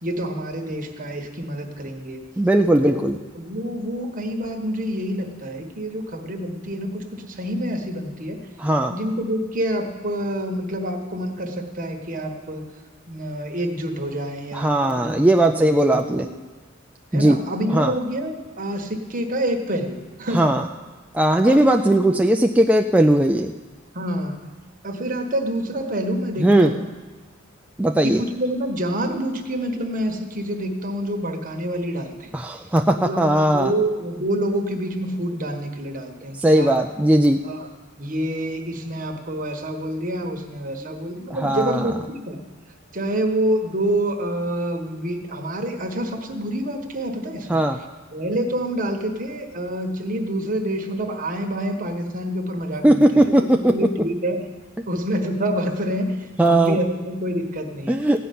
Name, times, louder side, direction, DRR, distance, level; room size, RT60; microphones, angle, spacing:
voice 1, 0.0-2.2 2.8-8.4 8.9-12.6 13.1-16.4 17.1-20.6 21.4-22.2 23.9-24.4 24.8-26.8 28.0-32.3 32.9-36.8 37.4-37.7 38.0-42.4 42.9-47.6 48.1-54.4 54.9-58.0, right 1 dB, 40° right, 3 dB, 1.4 m, -27 dB
voice 2, 2.4-3.2 8.6-8.9 14.5-16.3 17.1-17.4 17.7-17.9 20.3-20.6 21.1-23.5 26.4-26.7 27.8-28.2 32.3-33.7 36.4-37.4 41.3-41.9 47.5-47.8 52.8-53.7 56.4-56.8 57.9-58.2, right 1 dB, 5° right, 4 dB, 0.4 m, -18 dB
15.5 x 5.7 x 9.3 m, 1.3 s
head